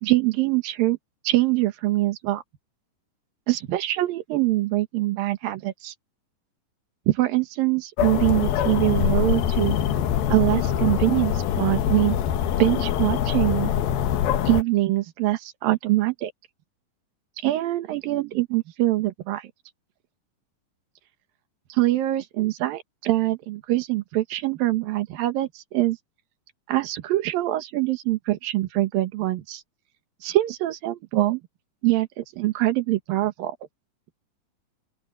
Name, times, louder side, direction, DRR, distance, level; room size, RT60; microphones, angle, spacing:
voice 1, 0.0-1.0 1.2-2.4 3.5-5.9 7.1-9.8 10.3-12.2 12.6-13.7 14.4-16.3 17.4-19.5 21.7-26.0 26.7-29.6 30.2-31.4 31.8-33.6, right 17 dB, 80° right, 3.2 m, -24 dB
sound 1, 8.0-14.6, left 9 dB, 90° left, 3.1 m, -24 dB
open air
omnidirectional pair, 4.1 m